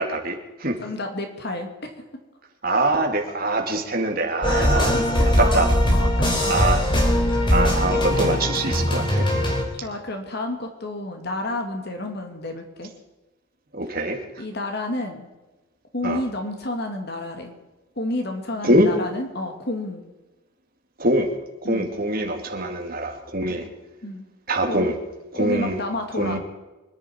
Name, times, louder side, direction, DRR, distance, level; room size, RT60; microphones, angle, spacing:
voice 1, 0.0-0.8 2.6-4.9 5.4-5.7 6.5-6.8 7.5-9.3 13.7-14.2 16.0-16.2 18.6-18.9 21.0-21.3 21.6-23.7 24.5-25.0 25.3-25.8 26.2-26.4, right 1 dB, 45° right, 3 dB, 2.5 m, -23 dB
voice 2, 0.8-2.0 4.5-6.7 9.8-12.9 14.4-15.3 15.9-17.5 18.0-20.0 21.6-21.9 23.5-23.7 24.0-24.2 24.7-24.9 25.3-26.4, left 1 dB, 50° left, 4 dB, 2.4 m, -30 dB
sound 1, 4.4-9.6, equal, 25° left, 3.3 m, -20 dB
25.5 x 11.0 x 4.6 m, 1.1 s
head